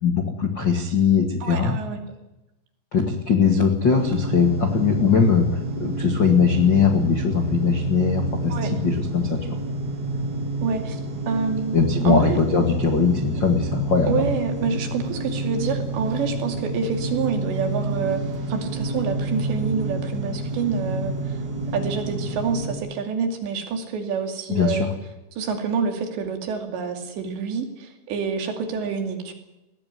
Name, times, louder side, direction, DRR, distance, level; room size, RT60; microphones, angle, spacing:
voice 1, 0.0-1.8 2.9-9.6 11.7-14.3 24.5-24.9, left 6 dB, 60° left, 4 dB, 1.2 m, -20 dB
voice 2, 1.4-2.0 8.5-8.7 10.6-11.0 11.3-12.4 14.1-21.4 21.7-24.9 25.3-29.3, right 5 dB, 65° right, 5 dB, 4.6 m, -27 dB
sound 1, 3.9-22.7, right 2 dB, 40° right, 4.2 m, -28 dB
21.0 x 16.0 x 9.8 m, 0.97 s
omnidirectional pair, 5.6 m